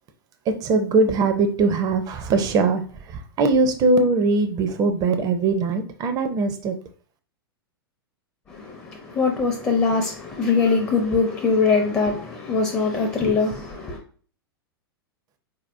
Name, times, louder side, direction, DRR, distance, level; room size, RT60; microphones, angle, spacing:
voice 1, 0.5-6.8, right 3 dB, 30° right, 0.6 m, -21 dB
voice 2, 8.5-14.0, left 4 dB, 20° left, 0.6 m, -22 dB
4.2 x 2.8 x 2.6 m
figure-of-eight pair, 100°, 13 cm